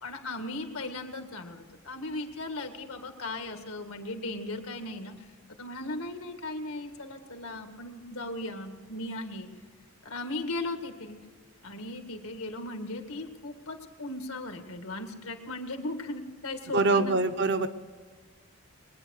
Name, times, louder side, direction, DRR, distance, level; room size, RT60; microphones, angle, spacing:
voice 1, 0.0-5.1 5.5-9.5 10.0-11.2 11.6-17.2, left 2 dB, 85° left, 5 dB, 2.0 m, -37 dB
voice 2, 16.7-17.7, right 3 dB, 55° right, 7 dB, 0.9 m, -24 dB
22.5 x 9.7 x 6.5 m, 1.5 s
head